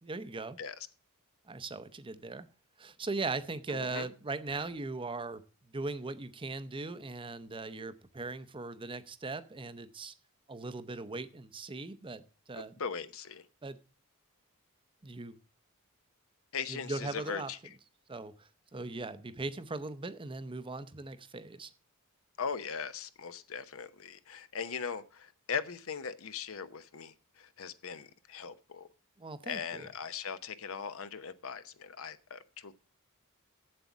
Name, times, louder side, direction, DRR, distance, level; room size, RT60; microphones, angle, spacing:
voice 1, 0.0-0.6 1.5-2.5 2.8-5.4 5.7-10.1 10.5-12.2 12.5-12.8 13.6-13.8 15.0-15.4 16.7-17.5 18.1-21.7 29.2-29.9, right 3 dB, 25° right, 0.6 m, -39 dB
voice 2, 3.7-4.1 12.8-13.4 16.5-17.6 22.4-28.9 29.4-32.7, left 6 dB, 70° left, 0.8 m, -39 dB
8.1 x 7.7 x 7.2 m
head